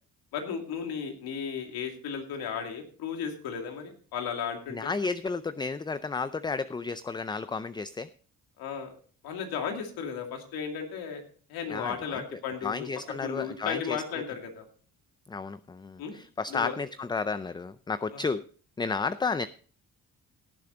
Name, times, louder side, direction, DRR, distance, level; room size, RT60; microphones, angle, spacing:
voice 1, 0.3-4.9 8.6-8.9 9.2-11.2 11.5-12.9 13.2-14.7 16.0-16.2 16.5-16.7 18.1-18.2, left 7 dB, 85° left, 4 dB, 2.5 m, -35 dB
voice 2, 4.7-8.1 11.7-12.2 12.6-14.0 15.3-18.4 18.8-19.5, left 4 dB, 15° left, 14 dB, 0.4 m, -32 dB
17.5 x 7.2 x 3.8 m, 0.42 s
cardioid pair, 75°, 36 cm